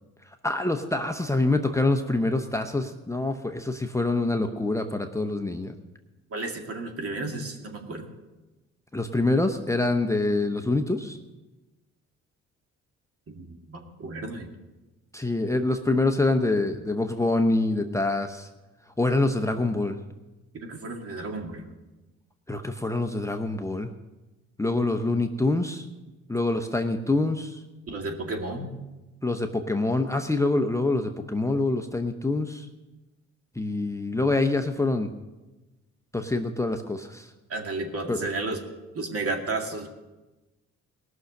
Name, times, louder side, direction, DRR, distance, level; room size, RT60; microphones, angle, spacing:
voice 1, 0.4-5.7 8.9-11.2 15.1-18.5 19.0-20.0 22.5-23.9 24.6-25.9 26.3-27.6 29.2-32.7 33.6-35.1 36.1-37.3 38.1-38.2, left 2 dB, 10° left, 5 dB, 0.8 m, -25 dB
voice 2, 6.3-8.1 13.3-14.5 20.7-21.6 27.9-28.7 37.5-38.6 38.9-39.9, right 2 dB, 50° right, 3 dB, 2.3 m, -32 dB
18.5 x 6.4 x 6.6 m, 1.1 s
cardioid pair, 90°, 30 cm